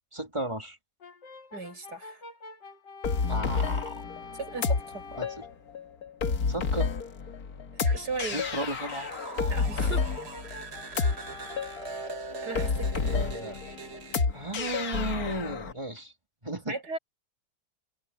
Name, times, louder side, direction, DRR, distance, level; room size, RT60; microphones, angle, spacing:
voice 1, 0.1-0.8 3.3-4.0 5.2-5.4 6.5-6.9 8.3-9.1 13.0-13.6 14.3-16.1 16.4-16.7, right 1 dB, 15° right, 3.0 m, -34 dB
Brass instrument, 1.0-5.6 7.9-14.3, left 3 dB, 75° left, 3.0 m, -47 dB
voice 2, 1.5-2.2 4.3-5.0 7.7-8.4 9.5-10.1 12.4-13.0 16.7-17.0, right 3 dB, 65° right, 7.5 m, -36 dB
sound 1, 3.0-15.7, left 5 dB, 55° left, 1.9 m, -30 dB
sound 2, 7.8-14.3, right 4 dB, 40° right, 1.7 m, -42 dB
open air
omnidirectional pair, 1.9 m